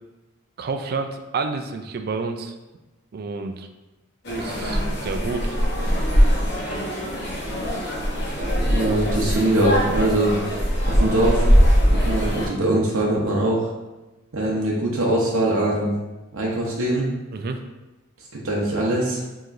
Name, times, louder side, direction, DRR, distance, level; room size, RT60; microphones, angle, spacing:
voice 1, 0.6-2.5 3.1-3.7 4.3-5.6 17.3-17.6, right 4 dB, 45° right, 6 dB, 0.3 m, -29 dB
sound 1, 4.2-12.5, equal, 55° left, 0.9 m, -21 dB
voice 2, 8.7-10.3 11.0-11.5 12.0-13.7 14.3-15.9 16.3-17.1 18.3-19.2, right 1 dB, 75° right, -4 dB, 0.7 m, -22 dB
4.8 x 3.0 x 2.5 m, 1.1 s
head